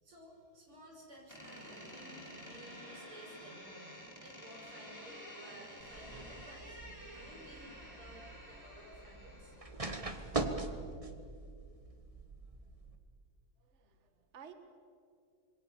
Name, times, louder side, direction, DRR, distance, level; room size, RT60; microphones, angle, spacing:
voice 1, 0.0-3.7 4.2-9.5, equal, 85° right, 0 dB, 6.8 m, -55 dB
Door, 1.3-9.8, equal, 5° left, 6.4 m, -51 dB
sound 1, 5.8-13.0, right 3 dB, 20° right, 1.2 m, -42 dB
voice 2, 13.6-14.5, right 8 dB, 35° right, 8 dB, 1.6 m, -55 dB
27.0 x 22.5 x 7.0 m, 2.3 s
omnidirectional pair, 2.3 m